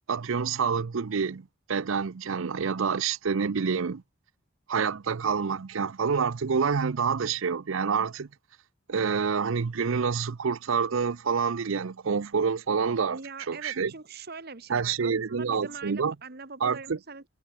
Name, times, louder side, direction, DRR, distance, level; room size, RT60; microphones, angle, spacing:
voice 1, 0.1-1.4 1.7-4.0 4.7-8.3 8.9-13.2 13.5-13.9 14.7-16.1 16.6-17.0, right 5 dB, 70° right, 0.5 m, -27 dB
voice 2, 13.1-17.2, right 4 dB, 45° right, 1.4 m, -43 dB
head